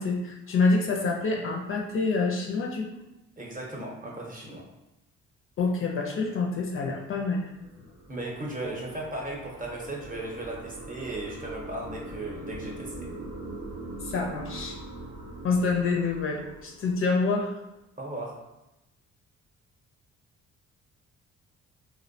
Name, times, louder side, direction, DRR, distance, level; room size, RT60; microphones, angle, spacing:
voice 1, 0.0-2.9 5.6-7.4 7.8-7.9 14.0-14.8 15.4-17.5, left 3 dB, 45° left, 1 dB, 0.4 m, -27 dB
voice 2, 3.4-4.6 8.1-13.1 18.0-18.3, right 1 dB, 30° right, -2 dB, 0.7 m, -36 dB
sound 1, 7.3-17.5, right 2 dB, 85° right, 0.6 m, -42 dB
2.5 x 2.1 x 2.6 m, 0.94 s
cardioid pair, 90°, 30 cm